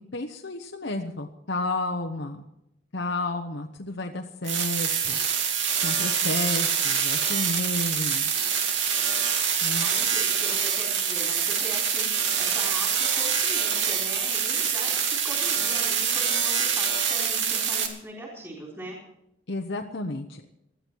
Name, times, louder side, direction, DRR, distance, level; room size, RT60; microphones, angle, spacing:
voice 1, 0.1-2.4 2.9-5.2 5.8-8.2 9.6-9.9 19.5-20.5, left 2 dB, 70° left, 3 dB, 1.1 m, -31 dB
sound 1, 4.4-17.9, right 7 dB, 85° right, 2.6 m, -25 dB
voice 2, 9.8-19.0, right 1 dB, 15° right, -2 dB, 4.1 m, -40 dB
20.0 x 13.5 x 4.6 m, 0.80 s
head